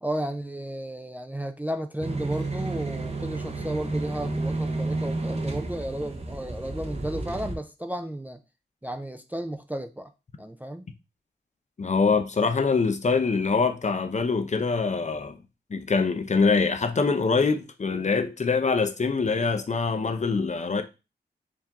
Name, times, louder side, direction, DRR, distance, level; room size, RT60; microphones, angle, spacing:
voice 1, 0.0-8.4 8.8-10.1 10.4-10.9, right 1 dB, 10° right, 0.4 m, -33 dB
sound 1, 1.7-4.6 5.0-5.1 5.5-5.7 6.9-7.0, right 7 dB, 80° right, 1.3 m, -52 dB
sound 2, 2.0-7.6, right 2 dB, 35° right, 0.9 m, -31 dB
voice 2, 11.8-15.4 15.7-20.8, left 4 dB, 40° left, 0.6 m, -24 dB
4.6 x 2.6 x 3.5 m
wide cardioid pair, 80°, 18 cm